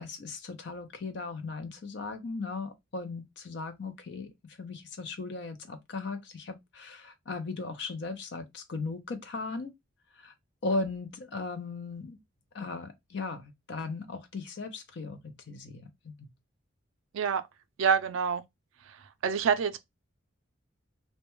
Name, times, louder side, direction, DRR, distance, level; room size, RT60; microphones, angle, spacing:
voice 1, 0.0-4.3 4.6-9.7 10.1-10.3 10.6-12.2 12.5-16.3, left 3 dB, 55° left, 0.5 m, -37 dB
voice 2, 17.8-18.4 19.2-19.8, right 6 dB, 75° right, 0.3 m, -26 dB
2.1 x 2.1 x 3.0 m
head